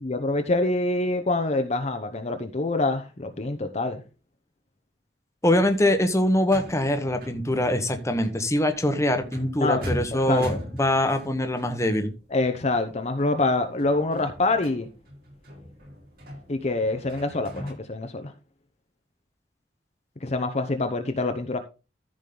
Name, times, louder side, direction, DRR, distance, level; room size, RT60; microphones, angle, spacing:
voice 1, 0.0-4.0 9.6-9.8 10.3-10.6 12.3-14.9 16.5-18.3 20.2-21.6, left 2 dB, 40° left, 0.9 m, -25 dB
voice 2, 5.4-12.1, left 1 dB, 15° left, 1.2 m, -23 dB
sound 1, 5.6-17.7, equal, 60° right, 6.7 m, -40 dB
14.0 x 5.2 x 3.9 m
head